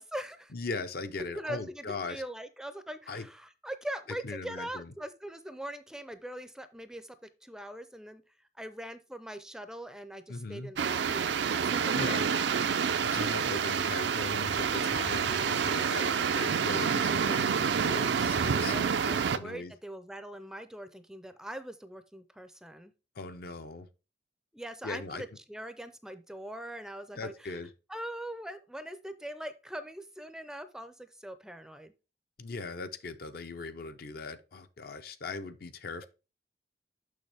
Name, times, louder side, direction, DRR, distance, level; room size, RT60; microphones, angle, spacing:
voice 1, 0.0-0.5 1.3-7.2 7.4-8.2 8.6-12.4 18.6-22.9 24.5-27.6 27.9-31.9, right 1 dB, 5° right, 0.5 m, -42 dB
voice 2, 0.5-2.2 3.1-3.3 4.2-4.9 10.3-10.7 11.9-12.3 13.0-19.7 23.2-23.9 24.8-25.2 27.2-27.7 32.4-36.1, left 3 dB, 60° left, 0.6 m, -39 dB
sound 1, 10.8-19.4, right 6 dB, 80° right, 0.5 m, -28 dB
6.4 x 6.1 x 3.4 m
head